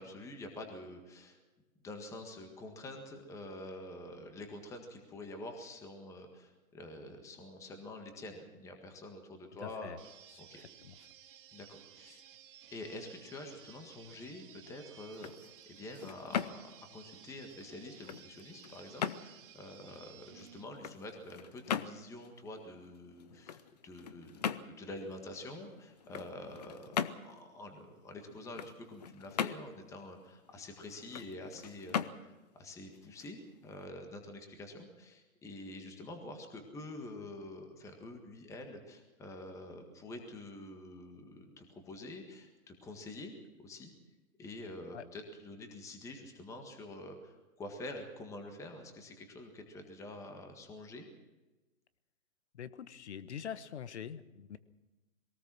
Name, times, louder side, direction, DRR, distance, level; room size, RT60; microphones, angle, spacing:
voice 1, 0.0-1.4 1.8-10.0 10.4-10.6 11.5-12.2 12.7-43.9 44.4-51.0, left 2 dB, 5° left, 4 dB, 1.7 m, -47 dB
voice 2, 9.6-10.0 10.3-10.4 10.8-10.9 12.1-12.2 44.9-45.1 52.5-54.6, left 8 dB, 50° left, 14 dB, 1.3 m, -44 dB
sound 1, 10.0-20.7, right 10 dB, 40° right, 1.9 m, -57 dB
sound 2, 15.0-33.8, left 8 dB, 30° left, 0.7 m, -41 dB
22.5 x 18.5 x 6.2 m, 1.1 s
hypercardioid pair, 150°, 42 cm